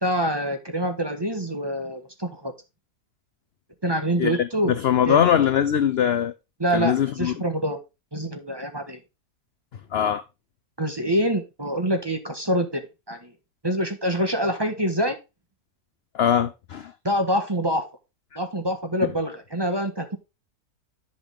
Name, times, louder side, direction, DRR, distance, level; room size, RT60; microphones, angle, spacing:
voice 1, 0.0-2.5 3.8-4.7 5.0-5.2 6.6-7.8 8.1-9.0 10.8-13.3 13.6-15.2 17.0-17.9 18.3-20.2, equal, 15° right, 1.3 m, -25 dB
voice 2, 4.2-6.3 6.7-7.3 9.9-10.2 16.1-16.9, left 9 dB, 60° left, 0.6 m, -21 dB
11.0 x 5.1 x 3.6 m
omnidirectional pair, 1.6 m